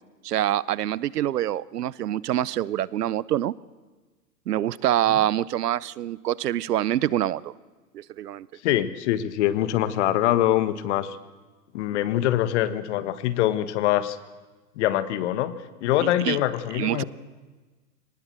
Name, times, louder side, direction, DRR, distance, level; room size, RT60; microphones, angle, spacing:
voice 1, 0.2-3.5 4.5-7.5 7.9-8.5 16.0-16.4 16.7-17.0, right 12 dB, 75° right, 22 dB, 0.8 m, -25 dB
voice 2, 8.6-11.2 11.7-14.2 14.8-15.5 15.8-17.0, left 13 dB, 45° left, 14 dB, 1.5 m, -24 dB
23.0 x 19.5 x 7.7 m, 1.3 s
hypercardioid pair, 135°, 47 cm